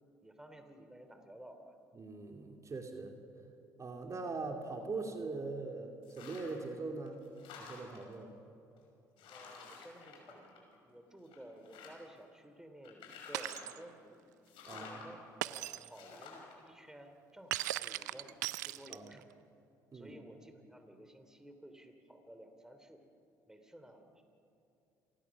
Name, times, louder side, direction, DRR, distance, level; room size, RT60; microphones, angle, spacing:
voice 1, 0.2-1.7 9.3-14.2 14.7-18.4 18.7-19.3 19.9-23.0 23.5-24.2, right 1 dB, 5° right, 6 dB, 3.2 m, -54 dB
voice 2, 1.9-3.1 3.8-7.2 7.5-8.3 14.6-15.1 18.9-19.1 19.9-20.2, right 3 dB, 35° right, 3 dB, 2.8 m, -41 dB
sound 1, 6.0-6.7 7.1-8.1 8.8-8.9 9.2-10.9 11.3-12.2 12.8-13.8 14.4-15.1 15.9-16.5, left 5 dB, 70° left, 5.7 m, -51 dB
Shatter, 13.3-13.8 15.4-15.9 17.5-19.2, right 16 dB, 90° right, 0.5 m, -38 dB
27.5 x 20.5 x 6.1 m, 2.7 s
hypercardioid pair, 60°, 9 cm